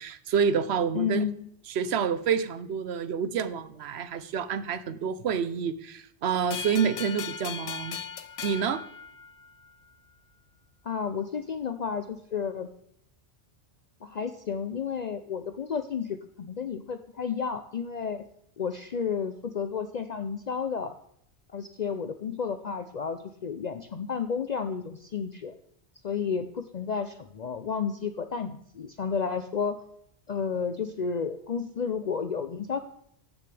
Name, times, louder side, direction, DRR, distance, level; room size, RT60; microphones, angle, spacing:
voice 1, 0.0-1.3 1.7-8.0 8.4-8.8, right 7 dB, 75° right, 14 dB, 1.0 m, -28 dB
voice 2, 0.9-1.5 10.8-12.7 14.0-18.2 18.6-20.9 21.5-25.5 26.0-29.8 30.3-32.8, left 6 dB, 50° left, 9 dB, 0.6 m, -32 dB
sound 1, 6.5-9.7, left 7 dB, 70° left, 1.0 m, -38 dB
14.5 x 10.0 x 3.4 m, 0.72 s
omnidirectional pair, 1.1 m